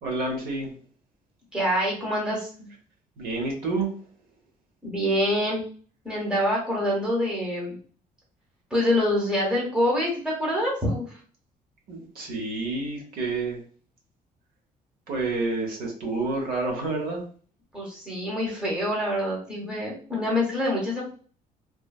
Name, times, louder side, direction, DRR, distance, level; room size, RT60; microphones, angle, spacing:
voice 1, 0.0-0.7 3.2-3.9 11.9-13.6 15.1-17.2, right 3 dB, 80° right, 1 dB, 1.0 m, -29 dB
voice 2, 1.5-2.7 4.8-5.6 6.0-7.7 8.7-11.1 17.7-21.0, left 1 dB, 5° right, -5 dB, 0.9 m, -26 dB
3.2 x 2.2 x 2.3 m, 0.42 s
cardioid pair, 180°, 15 cm